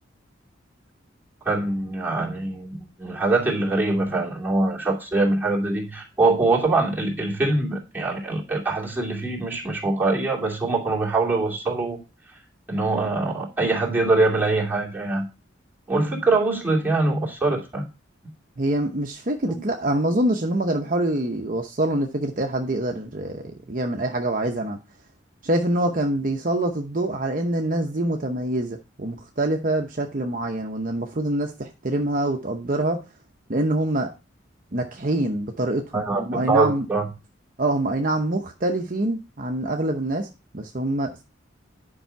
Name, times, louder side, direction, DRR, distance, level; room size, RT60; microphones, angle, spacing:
voice 1, 1.4-12.0 12.7-15.3 15.9-17.9 19.5-19.6 35.9-37.1, right 2 dB, 10° right, 2.6 m, -23 dB
voice 2, 18.6-24.8 25.4-33.0 33.5-34.1 34.7-36.9 37.6-40.3 40.5-41.2, right 1 dB, 45° right, 0.8 m, -25 dB
9.9 x 5.5 x 4.5 m
head